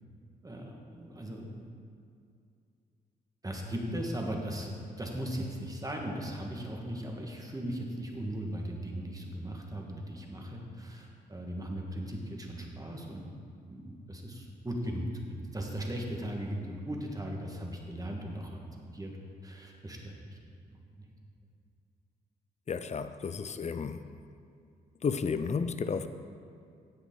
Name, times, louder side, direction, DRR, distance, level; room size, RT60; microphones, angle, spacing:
voice 1, 0.4-1.7 3.4-13.2 13.6-19.1 19.4-20.4 20.7-21.1, right 1 dB, 20° right, 0 dB, 1.8 m, -38 dB
voice 2, 22.7-24.1 25.0-26.1, left 5 dB, 40° left, 11 dB, 0.6 m, -32 dB
10.5 x 8.0 x 3.9 m, 2.4 s
supercardioid pair, 55°, 18 cm